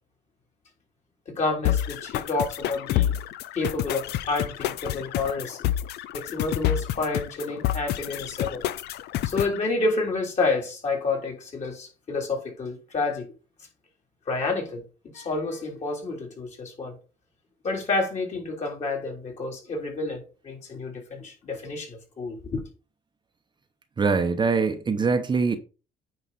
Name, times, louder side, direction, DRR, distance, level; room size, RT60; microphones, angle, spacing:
voice 1, 1.3-3.2 3.5-5.6 6.1-8.6 9.2-13.3 14.3-14.8 15.1-17.0 17.6-22.6, left 3 dB, 45° left, 3.6 m, -29 dB
sound 1, 1.6-9.6, left 12 dB, 75° left, 0.6 m, -28 dB
voice 2, 24.0-25.6, right 4 dB, 25° right, 0.9 m, -23 dB
9.4 x 4.9 x 4.2 m
cardioid pair, 110°, 17 cm